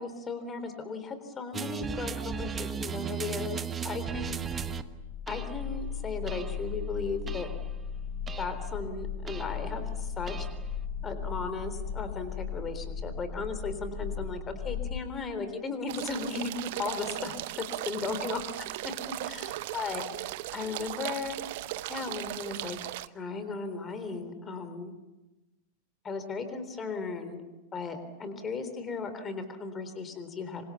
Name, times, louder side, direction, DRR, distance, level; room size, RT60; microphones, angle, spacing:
voice 1, 0.0-4.4 5.3-7.5 8.4-10.5 11.0-18.4 19.2-21.4 21.9-22.8 23.1-24.9 26.0-27.4 27.7-30.6, left 4 dB, 20° left, 9 dB, 3.7 m, -36 dB
sound 1, 1.5-4.8 5.3-5.6 6.3-6.7 7.3-7.7 8.3-8.7 9.3-9.7 10.3-10.7, right 7 dB, 20° right, 1.2 m, -36 dB
sound 2, 4.4-15.0, left 6 dB, 55° left, 3.9 m, -37 dB
sound 3, 15.9-23.1, right 17 dB, 50° right, 0.8 m, -37 dB
27.5 x 25.0 x 7.2 m, 1.1 s
figure-of-eight pair, 90°, 0 cm